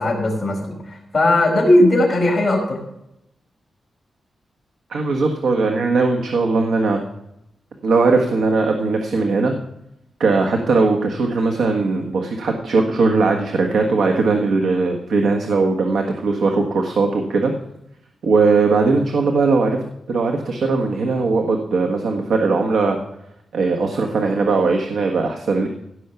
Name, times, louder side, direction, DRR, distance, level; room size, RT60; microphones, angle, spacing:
voice 1, 0.0-2.8, left 1 dB, 15° left, -3 dB, 5.1 m, -17 dB
voice 2, 4.9-7.0 7.8-9.5 10.2-17.5 18.2-19.8 20.1-23.0 23.5-25.7, right 3 dB, 80° right, 2 dB, 1.5 m, -19 dB
16.5 x 6.4 x 6.9 m, 0.83 s
wide cardioid pair, 175°, 0 cm